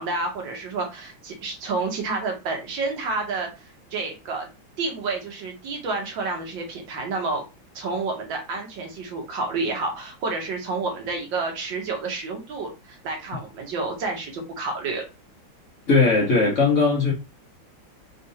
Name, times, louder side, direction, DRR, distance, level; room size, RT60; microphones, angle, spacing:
voice 1, 0.0-4.5 4.8-7.4 7.8-15.1, right 3 dB, 75° right, 1.7 m, -29 dB
voice 2, 15.9-17.1, left 4 dB, 45° left, 1.3 m, -18 dB
4.1 x 2.5 x 2.7 m
omnidirectional pair, 2.1 m